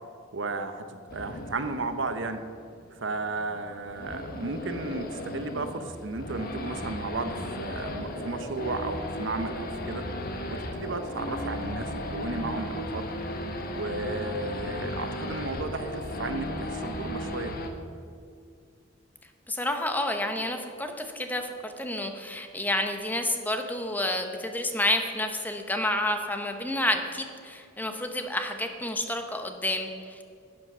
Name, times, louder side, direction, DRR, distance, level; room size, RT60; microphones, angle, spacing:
voice 1, 0.3-2.4 2.9-10.1 10.5-13.1 13.7-17.5, right 3 dB, 70° right, 8 dB, 0.9 m, -34 dB
Race car auto racing / Idling / Accelerating revving vroom, 1.1-17.7, left 1 dB, 50° left, 1.2 m, -36 dB
voice 2, 19.5-30.2, left 1 dB, 10° left, 5 dB, 0.9 m, -29 dB
11.0 x 8.5 x 6.0 m, 2.2 s
head